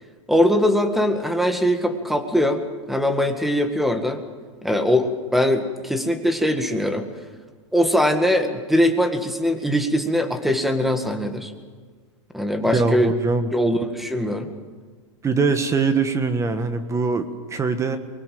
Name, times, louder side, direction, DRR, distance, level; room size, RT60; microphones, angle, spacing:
voice 1, 0.3-2.6 2.9-4.2 4.6-7.0 7.7-11.5 12.3-13.1 13.5-14.5, equal, ahead, 7 dB, 1.9 m, -21 dB
voice 2, 12.7-13.5 15.2-18.0, right 4 dB, 20° right, 9 dB, 1.5 m, -22 dB
23.5 x 21.0 x 7.8 m, 1.5 s
hypercardioid pair, 125°, 16 cm